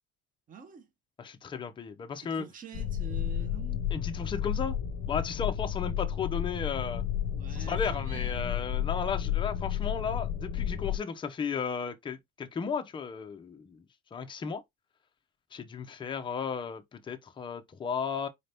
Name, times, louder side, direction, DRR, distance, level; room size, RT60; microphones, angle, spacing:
voice 1, 0.5-0.9 2.2-3.8 7.3-8.7, right 7 dB, 25° right, 0.6 m, -46 dB
voice 2, 1.2-2.5 3.9-4.8 5.1-7.0 7.5-13.8 14.1-14.6 15.5-18.3, left 6 dB, 15° left, 0.4 m, -34 dB
sound 1, 2.7-11.0, left 10 dB, 45° left, 0.8 m, -32 dB
4.2 x 2.6 x 3.3 m
cardioid pair, 155°, 35 cm